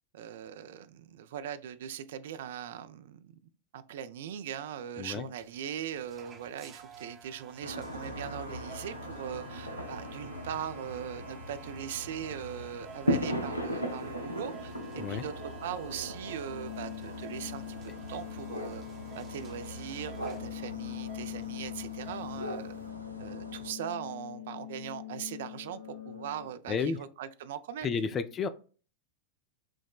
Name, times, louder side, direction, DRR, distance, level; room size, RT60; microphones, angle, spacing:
voice 1, 0.1-3.4 3.7-17.8 18.1-18.8 19.2-22.8 23.2-28.2, right 9 dB, 55° right, 0.3 m, -40 dB
sound 1, 5.4-22.9, right 6 dB, 25° right, 0.7 m, -53 dB
sound 2, 7.6-23.7, equal, 85° left, 0.5 m, -39 dB
sound 3, 16.5-26.5, left 13 dB, 55° left, 0.8 m, -43 dB
voice 2, 26.7-27.0 27.8-28.5, left 6 dB, 25° left, 0.3 m, -31 dB
5.8 x 2.1 x 2.2 m
figure-of-eight pair, 90°, 0 cm